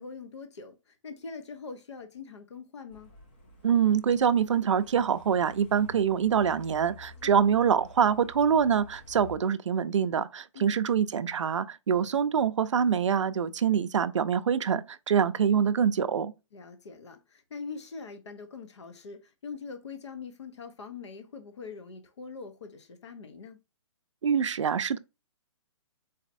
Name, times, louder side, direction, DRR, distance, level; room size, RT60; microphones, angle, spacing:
voice 1, 0.0-3.1 7.2-7.4 10.5-10.8 16.5-23.6, left 5 dB, 65° left, 0.8 m, -43 dB
Truck, 2.9-9.4, left 2 dB, 20° left, 0.6 m, -50 dB
voice 2, 3.6-16.3 24.2-25.0, right 7 dB, 70° right, 0.4 m, -25 dB
4.1 x 4.0 x 2.6 m
hypercardioid pair, 180°, 16 cm